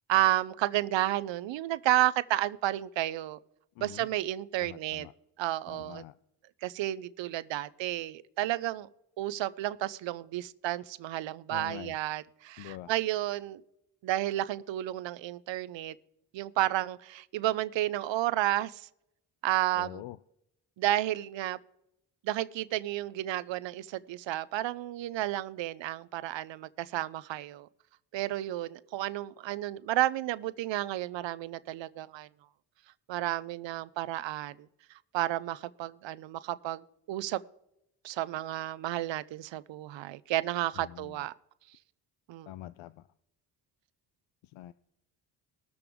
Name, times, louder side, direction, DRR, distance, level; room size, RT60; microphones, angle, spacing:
voice 1, 0.1-3.4 3.8-5.1 5.4-6.0 6.6-8.9 9.2-13.6 14.0-16.0 16.3-18.9 19.4-20.0 20.8-21.6 22.2-27.7 28.1-32.3 33.1-34.7 35.1-37.4 38.0-41.3 42.3-42.5, right 15 dB, 70° right, 0.7 m, -31 dB
voice 2, 3.8-4.1 4.6-5.1 5.7-6.2 11.5-11.9 12.6-12.9 19.7-20.2 40.8-41.3 42.5-43.1 44.4-44.7, left 14 dB, 80° left, 0.5 m, -45 dB
20.5 x 6.9 x 3.6 m
cardioid pair, 75°, 46 cm